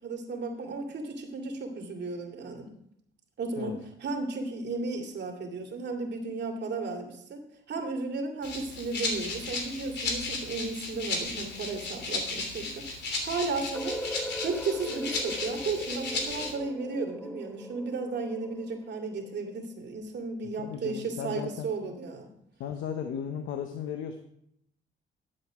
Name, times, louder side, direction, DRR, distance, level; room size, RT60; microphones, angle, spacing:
voice 1, 0.0-2.7 3.4-14.0 14.4-22.3, right 3 dB, 60° right, 2 dB, 2.4 m, -34 dB
Rattle (instrument), 8.4-16.5, left 3 dB, 60° left, 3.1 m, -34 dB
sound 1, 13.7-19.6, left 1 dB, 5° left, 0.6 m, -40 dB
voice 2, 20.4-21.7 22.6-24.2, left 8 dB, 85° left, 6 dB, 0.9 m, -36 dB
11.0 x 7.7 x 4.9 m, 0.74 s
cardioid pair, 90°, 20 cm